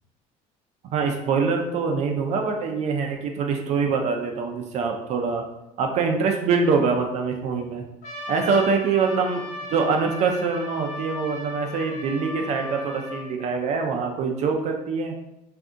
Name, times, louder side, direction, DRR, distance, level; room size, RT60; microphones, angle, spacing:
voice 1, 0.9-5.4 5.8-7.8 8.3-9.4 9.7-15.1, right 5 dB, 50° right, 3 dB, 0.4 m, -24 dB
Trumpet, 8.0-13.4, left 1 dB, 60° left, 1.1 m, -37 dB
2.6 x 2.5 x 3.5 m, 0.89 s
cardioid pair, 135°, 15 cm